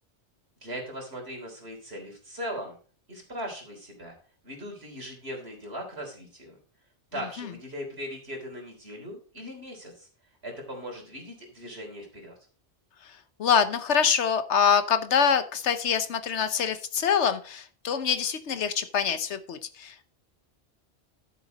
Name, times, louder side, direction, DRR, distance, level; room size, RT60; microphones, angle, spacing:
voice 1, 0.6-2.8 3.1-4.2 4.4-6.6 7.1-10.1 10.4-12.4, equal, 65° right, 0 dB, 3.8 m, -39 dB
voice 2, 13.4-20.1, left 7 dB, 80° left, 10 dB, 1.2 m, -25 dB
12.0 x 7.1 x 4.1 m, 0.41 s
omnidirectional pair, 1.1 m